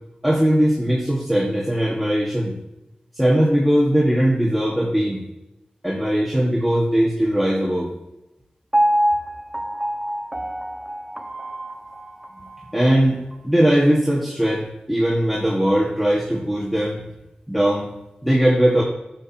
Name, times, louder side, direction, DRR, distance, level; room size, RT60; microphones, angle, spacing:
voice 1, 0.2-2.6 3.1-5.2 5.8-7.9 12.7-17.0 17.5-17.9 18.2-18.8, equal, ahead, -3 dB, 1.7 m, -19 dB
Piano, 8.7-12.8 13.3-13.4, equal, 15° right, 0.7 m, -25 dB
12.5 x 7.7 x 2.9 m, 0.95 s
cardioid pair, 50°, 3 cm